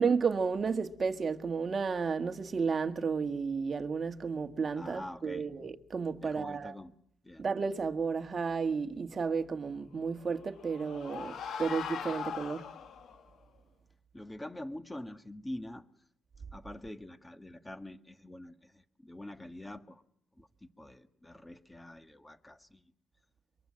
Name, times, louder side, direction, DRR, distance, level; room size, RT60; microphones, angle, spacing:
voice 1, 0.0-6.8 7.4-12.7, right 5 dB, 40° right, 1.7 m, -32 dB
voice 2, 4.8-5.5 6.2-6.9 7.2-7.4 14.1-15.8 16.5-20.0 20.4-22.8, left 1 dB, 10° left, 1.7 m, -45 dB
sound 1, 10.2-13.2, left 7 dB, 65° left, 2.3 m, -40 dB
23.5 x 23.0 x 7.6 m
cardioid pair, 90°, 0 cm